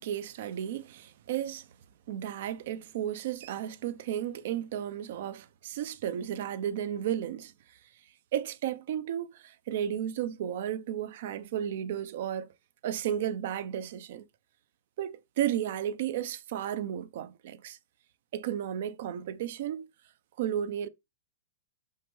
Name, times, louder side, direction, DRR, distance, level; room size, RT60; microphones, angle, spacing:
voice 1, 0.0-1.7 2.1-7.5 8.3-12.5 12.8-14.2 15.0-17.8 18.3-19.9 20.4-20.9, right 10 dB, 50° right, 0.7 m, -33 dB
6.0 x 5.7 x 3.2 m
hypercardioid pair, 165°, 0 cm